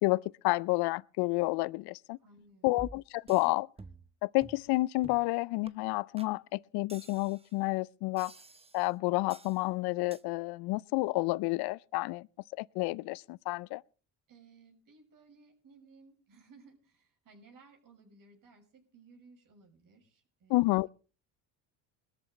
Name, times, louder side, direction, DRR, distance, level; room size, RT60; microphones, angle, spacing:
voice 1, 0.0-2.2 2.6-3.7 4.2-8.3 8.7-12.3 12.6-13.8 20.5-20.9, left 22 dB, 65° left, 0.6 m, -30 dB
voice 2, 2.2-2.8 14.3-20.9, right 4 dB, 50° right, 6.3 m, -59 dB
sound 1, 2.8-3.5 3.8-4.1 4.4-4.7 5.0-5.3 5.7-5.8 6.2-6.3 6.9-7.5 8.2-8.9 9.3-9.6 10.1-10.2, right 3 dB, 15° right, 0.9 m, -50 dB
21.0 x 13.5 x 3.3 m
supercardioid pair, 80°, 41 cm